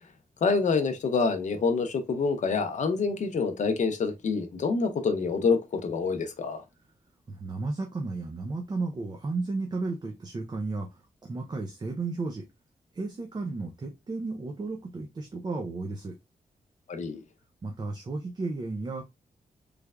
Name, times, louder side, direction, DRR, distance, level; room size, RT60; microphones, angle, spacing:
voice 1, 0.4-6.6 16.9-17.2, left 4 dB, 55° left, 0.7 m, -27 dB
voice 2, 7.3-12.5 12.9-16.1 17.6-19.0, right 3 dB, 30° right, 0.5 m, -33 dB
3.3 x 3.2 x 2.3 m
wide cardioid pair, 170°, 15 cm